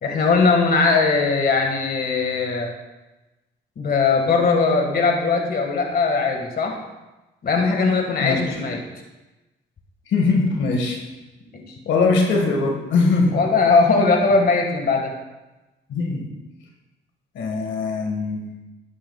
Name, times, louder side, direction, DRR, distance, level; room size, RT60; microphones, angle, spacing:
voice 1, 0.0-2.7 3.8-6.8 7.4-8.8 11.5-11.6 13.3-15.1, left 4 dB, 50° left, 2 dB, 1.8 m, -19 dB
voice 2, 8.2-8.6 10.1-11.0 11.8-13.4 15.9-16.3 17.3-18.6, left 3 dB, 75° left, 1 dB, 1.7 m, -21 dB
12.5 x 10.0 x 2.4 m, 1.1 s
cardioid pair, 90°, 20 cm